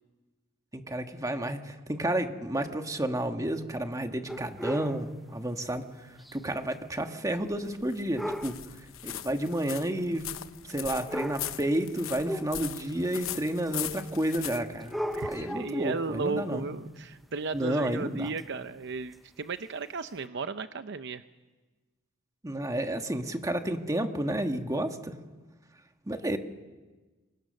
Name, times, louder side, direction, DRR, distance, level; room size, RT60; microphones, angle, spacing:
voice 1, 0.7-5.9 6.3-8.6 9.0-10.3 10.7-15.0 15.3-16.7 17.5-18.3 22.4-25.2 26.1-26.4, right 1 dB, 15° right, 6 dB, 1.6 m, -31 dB
sound 1, 4.3-5.0 6.2-6.4 6.7-6.8 8.2-8.6 9.6-9.7 10.7-10.8 11.1-11.6 12.3-12.9 13.7-13.8 14.8-15.9 18.4-18.5 19.1-19.2 20.1-20.2, equal, ahead, 0.8 m, -35 dB
sound 2, 7.4-15.5, left 12 dB, 85° left, 1.0 m, -40 dB
voice 2, 15.1-21.2, right 4 dB, 60° right, 10 dB, 0.7 m, -35 dB
29.0 x 24.5 x 6.6 m, 1.3 s
head